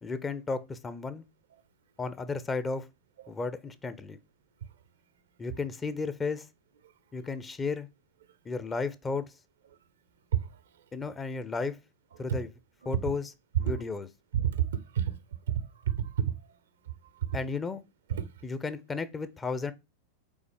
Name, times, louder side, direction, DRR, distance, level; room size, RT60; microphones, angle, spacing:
voice 1, 0.0-1.2 2.0-2.9 3.3-4.2 5.4-6.5 7.1-7.9 8.5-9.3 10.9-11.8 12.2-12.5 12.9-13.3 13.6-14.1 17.3-17.8 18.4-19.7, left 4 dB, 15° left, 0.6 m, -33 dB
voice 2, 14.3-15.2 15.5-16.3 18.1-18.3, right 10 dB, 60° right, 0.7 m, -29 dB
5.4 x 4.0 x 4.7 m
figure-of-eight pair, 90°, 0 cm